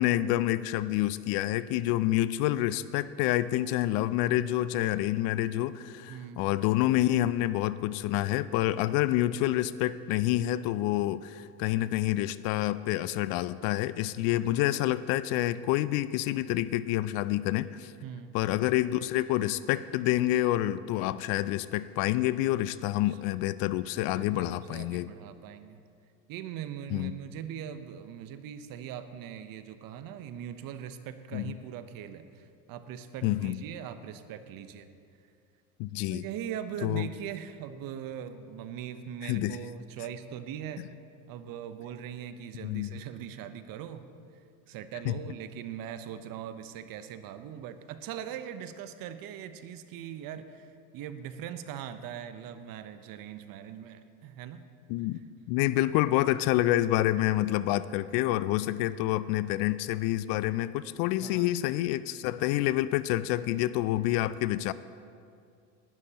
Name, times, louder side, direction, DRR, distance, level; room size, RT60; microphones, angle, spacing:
voice 1, 0.0-17.9 18.3-25.1 26.9-27.1 31.3-31.5 33.2-33.6 35.8-36.2 36.8-37.1 39.2-39.6 42.6-43.0 45.1-45.2 54.9-64.7, left 15 dB, 55° left, 16 dB, 0.5 m, -28 dB
voice 2, 6.1-6.4 18.0-18.3 23.0-23.2 24.0-25.8 26.3-34.9 36.1-40.8 41.3-44.1 44.7-54.6 58.8-59.0 61.2-61.6, right 9 dB, 50° right, 10 dB, 0.9 m, -41 dB
19.0 x 12.0 x 2.9 m, 2.3 s
hypercardioid pair, 90°, 44 cm